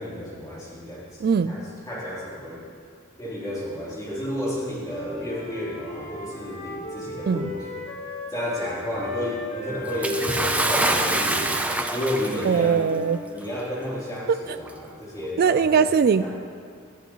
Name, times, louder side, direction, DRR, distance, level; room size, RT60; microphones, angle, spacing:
voice 1, 0.0-1.2 1.5-2.6 3.2-7.7 8.3-11.5 11.9-12.8 13.3-15.9 16.2-16.3, left 1 dB, 15° left, -7 dB, 3.5 m, -32 dB
voice 2, 1.2-1.6 7.3-7.5 12.5-13.2 15.4-16.3, right 6 dB, 45° right, 12 dB, 0.3 m, -20 dB
Wind instrument woodwind instrument, 4.8-8.7 8.9-13.2, left 2 dB, 70° left, 4.2 m, -37 dB
Bathtub (filling or washing) / Splash splatter, 10.0-12.6 13.5-13.6 14.6-14.7, right 1 dB, 5° right, 0.6 m, -25 dB
19.0 x 12.0 x 3.1 m, 2.1 s
head